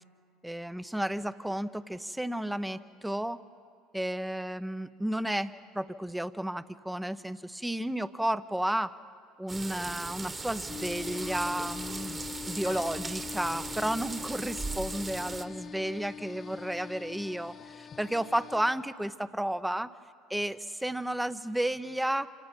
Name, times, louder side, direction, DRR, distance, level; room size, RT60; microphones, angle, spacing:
voice 1, 0.4-3.4 3.9-8.9 9.4-12.2 12.5-19.9 20.3-22.3, right 1 dB, 5° right, 13 dB, 0.8 m, -32 dB
sound 1, 9.5-15.5, right 3 dB, 20° right, 1.6 m, -39 dB
sound 2, 9.8-15.7, left 3 dB, 85° left, 4.8 m, -57 dB
sound 3, 10.7-18.7, left 6 dB, 35° left, 0.7 m, -43 dB
28.0 x 17.5 x 5.4 m, 2.3 s
hypercardioid pair, 70°, 0 cm